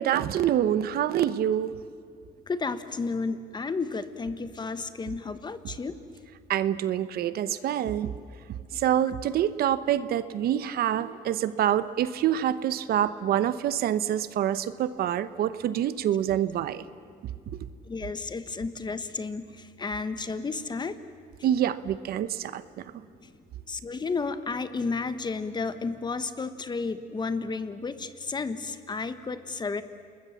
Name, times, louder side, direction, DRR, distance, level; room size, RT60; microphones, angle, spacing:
voice 1, 0.0-1.7 6.5-8.1 8.7-16.8 21.4-22.6, right 10 dB, 65° right, 14 dB, 0.9 m, -26 dB
voice 2, 2.5-5.9 17.9-21.0 23.2-23.3 23.7-29.8, left 4 dB, 25° left, 11 dB, 1.3 m, -32 dB
30.0 x 20.5 x 7.2 m, 2.2 s
cardioid pair, 110°, 17 cm